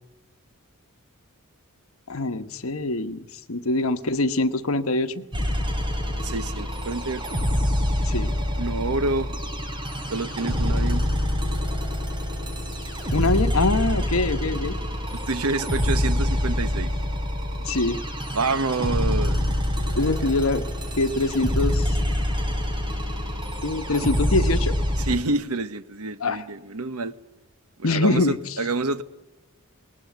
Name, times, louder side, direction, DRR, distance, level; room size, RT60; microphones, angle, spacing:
voice 1, 2.1-5.2 8.0-8.3 13.1-14.7 17.7-18.0 19.9-20.6 21.0-22.0 23.6-24.7 26.2-26.4 27.8-28.5, left 2 dB, 65° left, 10 dB, 1.2 m, -24 dB
sound 1, 5.3-25.2, equal, 20° right, 3.7 m, -26 dB
voice 2, 6.2-7.4 8.6-9.4 10.1-11.0 15.1-16.9 18.3-19.6 20.2-20.3 25.0-27.1 27.8-29.0, right 3 dB, 80° right, 13 dB, 1.1 m, -28 dB
20.0 x 20.0 x 9.3 m, 0.95 s
head